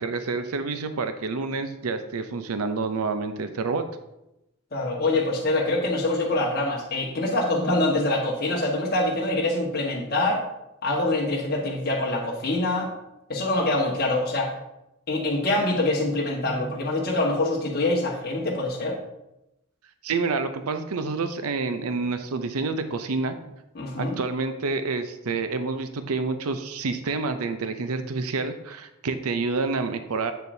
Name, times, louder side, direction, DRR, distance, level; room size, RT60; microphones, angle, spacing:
voice 1, 0.0-3.9 20.0-23.4 24.0-30.3, right 4 dB, 85° right, 9 dB, 0.5 m, -28 dB
voice 2, 4.7-10.4 10.8-12.9 13.3-14.5 15.1-19.0 23.7-24.1, left 2 dB, 45° left, -3 dB, 1.3 m, -25 dB
8.2 x 6.7 x 2.7 m, 0.90 s
head